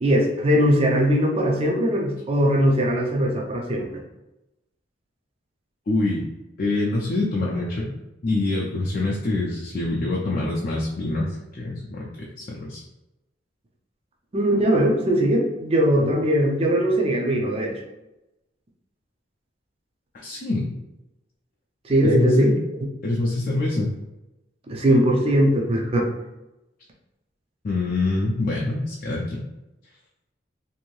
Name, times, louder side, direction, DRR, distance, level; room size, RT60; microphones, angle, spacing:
voice 1, 0.0-4.0 14.3-17.7 21.8-22.6 24.7-26.1, equal, 30° right, 0 dB, 0.4 m, -20 dB
voice 2, 5.9-6.2 6.6-7.9 8.2-12.8 20.1-20.7 22.0-22.6 23.0-23.9 27.6-29.4, left 2 dB, 45° left, -3 dB, 0.4 m, -25 dB
2.6 x 2.6 x 3.1 m, 0.96 s
head